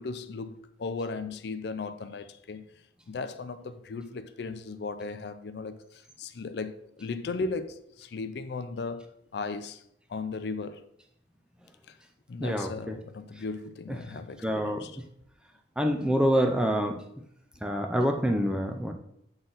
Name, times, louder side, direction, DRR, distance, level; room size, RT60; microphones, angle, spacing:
voice 1, 0.0-2.7 3.1-9.8 10.1-10.8 11.9-12.0 12.3-15.0, left 4 dB, 60° left, 0.4 m, -36 dB
voice 2, 12.4-12.7 14.4-14.8 15.8-17.0 17.6-18.9, equal, 5° right, 0.5 m, -26 dB
7.9 x 4.0 x 3.9 m
head